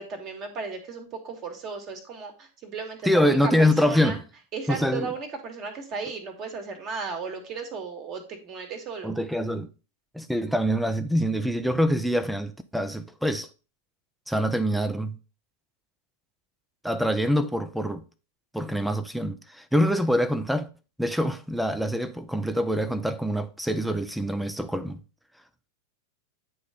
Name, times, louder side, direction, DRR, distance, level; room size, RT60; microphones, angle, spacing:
voice 1, 0.0-4.2 4.5-9.1, right 5 dB, 35° right, 1.9 m, -35 dB
voice 2, 3.0-4.2 4.7-5.1 9.0-9.7 10.1-13.5 14.3-15.2 16.8-18.0 18.5-20.7 21.0-25.0, equal, ahead, 0.6 m, -25 dB
9.4 x 3.3 x 5.1 m
figure-of-eight pair, 90°, 0 cm